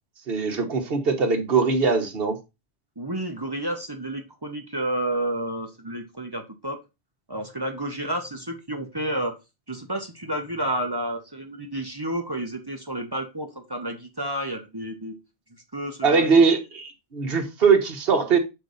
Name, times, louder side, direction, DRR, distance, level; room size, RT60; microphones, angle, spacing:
voice 1, 0.3-2.4 16.0-18.4, right 5 dB, 60° right, 1.4 m, -21 dB
voice 2, 3.0-6.8 7.3-9.3 9.7-15.2 15.7-16.4, right 1 dB, 25° right, 0.9 m, -30 dB
6.1 x 4.9 x 4.0 m
omnidirectional pair, 1.1 m